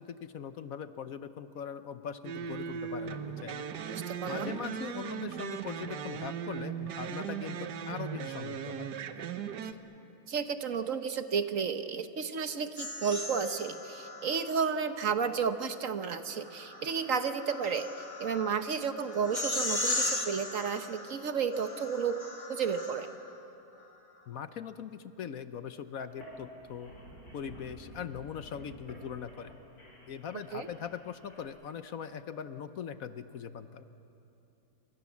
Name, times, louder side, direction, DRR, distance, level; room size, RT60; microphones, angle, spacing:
voice 1, 0.0-8.9 24.3-26.9 27.3-29.6 30.1-33.8, left 7 dB, 60° left, 11 dB, 1.2 m, -41 dB
sound 1, 2.2-9.7, right 8 dB, 80° right, 1.6 m, -38 dB
voice 2, 3.9-4.5 10.3-22.2 22.5-23.1 30.5-30.7, right 6 dB, 55° right, 9 dB, 1.3 m, -32 dB
sound 2, 12.8-14.7 16.2-23.4, left 2 dB, 20° left, 1.8 m, -37 dB
sound 3, 26.1-31.4, right 1 dB, 85° left, 7.0 m, -51 dB
29.0 x 25.5 x 7.3 m, 2.9 s
omnidirectional pair, 1.8 m